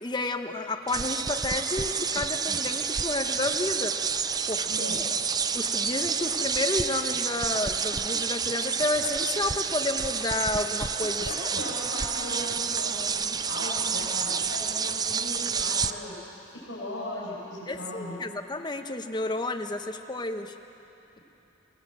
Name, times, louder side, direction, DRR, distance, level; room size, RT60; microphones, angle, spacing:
voice 1, 0.0-4.0 4.5-4.7 5.5-11.3 17.7-20.5, left 2 dB, 20° left, 5 dB, 1.0 m, -31 dB
sound 1, 0.9-15.9, right 6 dB, 20° right, 0.4 m, -29 dB
voice 2, 4.6-5.0 11.2-18.3, left 1 dB, 75° left, -6 dB, 5.9 m, -38 dB
27.0 x 18.0 x 7.6 m, 3.0 s
head